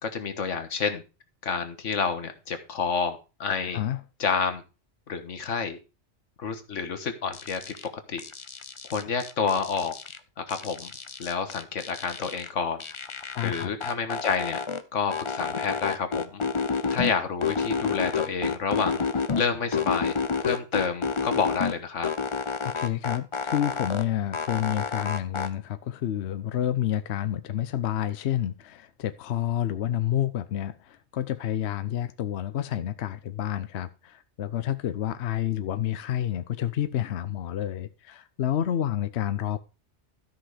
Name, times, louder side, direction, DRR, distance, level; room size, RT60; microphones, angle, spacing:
voice 1, 0.0-1.0 1.4-3.8 4.2-4.6 5.1-5.8 6.4-7.7 8.1-8.2 8.9-9.9 10.4-10.9 11.2-12.8 13.4-14.6 14.9-16.5 16.9-19.0 19.4-20.1 20.4-22.1, left 5 dB, 85° left, 1.6 m, -29 dB
sound 1, 7.3-7.9 8.2-10.2 10.5-12.5 12.8-14.8 15.1-17.1 17.4-19.4 19.7-21.7 22.0-24.0 24.3-25.5, left 5 dB, 35° left, 0.6 m, -30 dB
voice 2, 13.3-13.7 22.6-39.6, left 11 dB, 65° left, 0.9 m, -29 dB
13.0 x 5.8 x 4.9 m
omnidirectional pair, 1.2 m